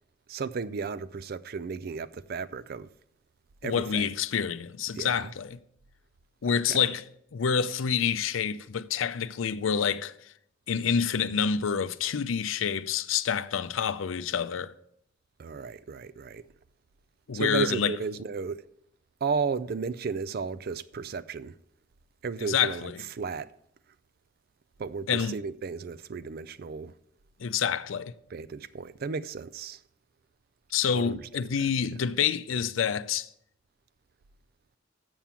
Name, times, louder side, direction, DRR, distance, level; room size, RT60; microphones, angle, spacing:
voice 1, 0.3-2.9 3.6-4.1 5.0-5.3 6.5-6.9 15.4-16.5 17.3-18.7 19.2-21.6 22.2-23.5 24.8-26.9 28.3-29.8 30.9-31.3, right 5 dB, 50° right, 0.4 m, -34 dB
voice 2, 3.6-5.6 6.4-7.0 7.3-10.1 10.7-14.7 17.3-17.9 22.4-22.9 25.1-25.3 27.4-28.1 30.7-33.3, left 7 dB, 80° left, 0.5 m, -27 dB
7.4 x 7.1 x 7.0 m
head